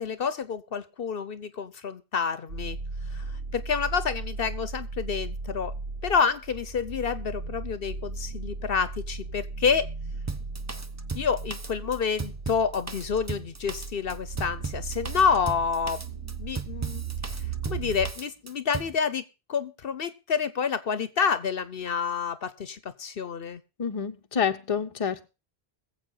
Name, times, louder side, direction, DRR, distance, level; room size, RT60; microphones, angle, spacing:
voice 1, 0.0-2.8 3.1-5.7 6.0-9.9 11.1-17.0 17.3-23.6, left 6 dB, 60° left, 14 dB, 1.0 m, -28 dB
sound 1, 2.5-18.1, right 4 dB, 90° right, 1.6 m, -37 dB
Drum kit, 10.3-19.0, right 4 dB, 20° right, 0.5 m, -37 dB
voice 2, 23.8-25.3, left 7 dB, 35° left, 6 dB, 0.8 m, -28 dB
22.0 x 7.7 x 3.9 m, 0.29 s
omnidirectional pair, 1.1 m